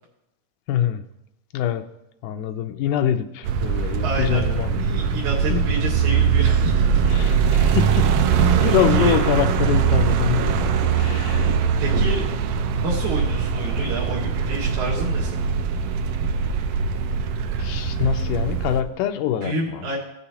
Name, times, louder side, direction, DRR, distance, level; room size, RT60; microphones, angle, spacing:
voice 1, 0.7-1.0 1.5-1.8 2.2-5.1 5.5-5.6 7.1-8.2 8.6-11.5 17.6-19.8, left 10 dB, 80° left, 8 dB, 2.1 m, -25 dB
sound 1, 3.4-18.8, right 6 dB, 85° right, 1.5 m, -21 dB
voice 2, 4.0-4.4 4.8-7.0 8.9-9.2 11.4-12.2 12.6-15.5 19.4-20.0, right 1 dB, 70° right, -5 dB, 2.7 m, -29 dB
16.0 x 6.8 x 2.9 m, 0.87 s
omnidirectional pair, 3.7 m